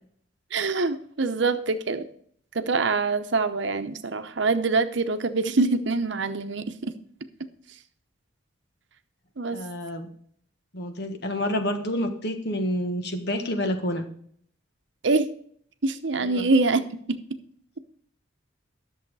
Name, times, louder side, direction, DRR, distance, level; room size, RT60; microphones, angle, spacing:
voice 1, 0.5-2.1 2.5-6.9 9.4-9.6 15.0-15.3 15.8-16.8 17.1-17.2, right 3 dB, 65° right, 9 dB, 0.8 m, -24 dB
voice 2, 9.5-10.1 10.7-14.0 16.2-16.5, left 1 dB, 55° left, 6 dB, 1.5 m, -28 dB
11.0 x 7.1 x 4.8 m, 0.62 s
head